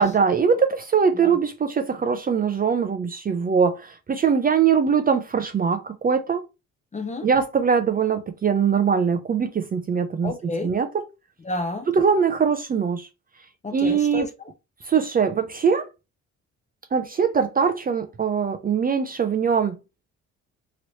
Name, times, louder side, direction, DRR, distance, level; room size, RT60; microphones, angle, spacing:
voice 1, 0.0-6.4 7.2-10.3 10.6-10.9 11.9-13.1 13.7-14.3 14.9-15.9 16.9-19.8, right 6 dB, 30° right, 0.4 m, -22 dB
voice 2, 6.9-7.3 10.2-10.7 11.4-11.9 13.6-14.5, left 2 dB, 25° left, 0.7 m, -31 dB
3.0 x 2.9 x 2.7 m
cardioid pair, 90°, 30 cm